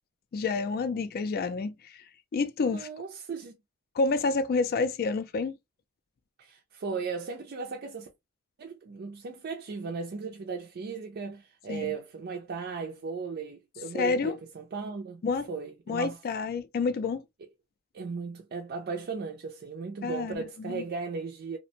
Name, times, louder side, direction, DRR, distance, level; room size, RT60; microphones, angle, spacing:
voice 1, 0.3-2.0 2.3-2.9 4.0-5.6 11.7-11.9 13.9-14.3 15.2-15.5 15.9-17.2 20.0-20.8, left 4 dB, 45° left, 0.3 m, -29 dB
voice 2, 2.6-3.5 6.4-8.1 8.6-15.2 15.5-16.2 17.9-21.6, right 4 dB, 50° right, 0.4 m, -36 dB
2.4 x 2.1 x 2.7 m
head